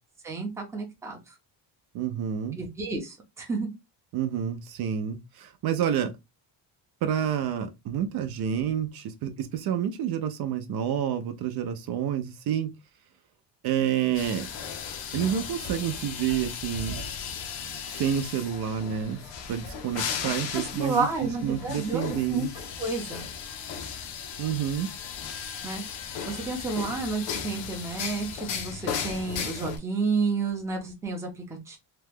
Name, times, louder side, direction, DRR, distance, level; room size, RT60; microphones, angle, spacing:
voice 1, 0.2-1.3 2.6-3.7 20.5-22.5 22.8-23.3 25.6-25.8 26.3-31.8, right 4 dB, 5° right, 0.6 m, -31 dB
voice 2, 1.9-2.6 4.1-6.1 7.0-12.7 13.6-14.5 15.1-17.0 17.5-19.2 19.5-22.5 24.4-24.9, right 9 dB, 60° right, 0.5 m, -29 dB
sound 1, 14.1-29.8, left 7 dB, 90° left, 0.8 m, -36 dB
2.9 x 2.2 x 3.3 m
cardioid pair, 175°, 44 cm